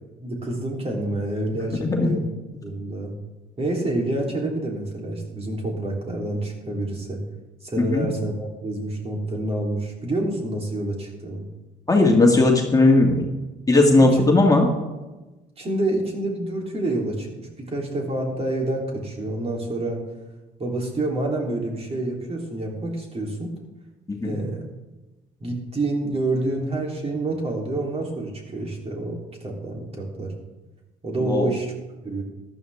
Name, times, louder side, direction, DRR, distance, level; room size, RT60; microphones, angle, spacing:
voice 1, 0.2-2.2 2.6-3.1 3.6-7.2 7.6-11.5 13.9-14.3 15.6-20.0 20.6-23.5 24.2-24.6 25.4-30.3 31.0-31.7 32.0-32.2, right 2 dB, 35° right, 0 dB, 3.3 m, -28 dB
voice 2, 11.9-13.3 13.7-14.7 24.1-24.3 31.2-31.5, left 2 dB, 20° left, 1 dB, 2.0 m, -17 dB
14.0 x 11.5 x 3.5 m, 1.1 s
hypercardioid pair, 60°, 18 cm